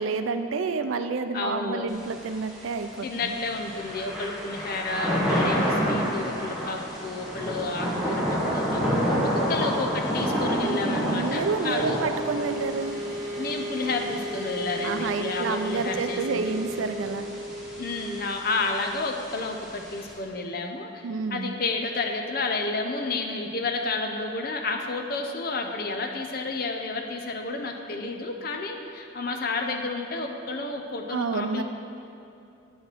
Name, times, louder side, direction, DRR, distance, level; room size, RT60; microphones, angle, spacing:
voice 1, 0.0-3.3 10.6-13.0 14.8-17.2 21.0-21.5 31.1-31.6, right 4 dB, 90° right, 9 dB, 0.4 m, -29 dB
voice 2, 1.3-1.9 3.0-8.8 9.2-12.0 13.4-16.6 17.8-21.1 21.3-31.6, left 3 dB, 50° left, 3 dB, 0.6 m, -31 dB
Thunder / Rain, 1.9-20.1, equal, ahead, 1.1 m, -30 dB
sound 1, 7.3-19.9, equal, 45° right, 1.1 m, -37 dB
9.0 x 4.9 x 4.5 m, 2.7 s
head